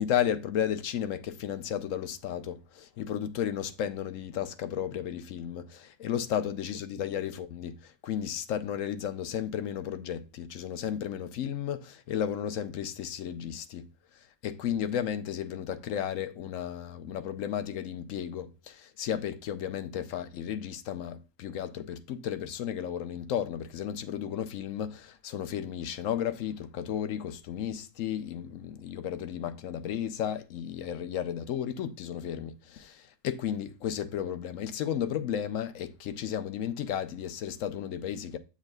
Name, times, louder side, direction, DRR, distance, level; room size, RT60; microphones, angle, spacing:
voice 1, 0.0-13.9 14.4-38.4, left 9 dB, 70° left, 0.9 m, -33 dB
7.5 x 7.1 x 2.2 m
omnidirectional pair, 1.5 m